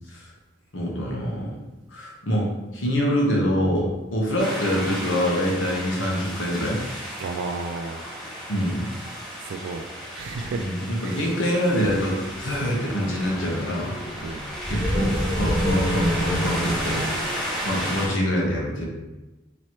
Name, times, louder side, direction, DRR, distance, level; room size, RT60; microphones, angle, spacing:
voice 1, 0.7-1.6 1.9-2.5 2.7-6.8 8.5-8.9 10.6-14.0 14.7-17.0 17.6-18.9, equal, 85° left, -2 dB, 1.0 m, -25 dB
sound 1, 4.4-18.1, equal, ahead, 1.1 m, -30 dB
voice 2, 7.2-8.0 9.4-9.9 10.2-10.7 11.0-11.3 14.2-14.4, right 4 dB, 80° right, 4 dB, 0.3 m, -32 dB
4.2 x 3.0 x 3.0 m, 1.1 s
head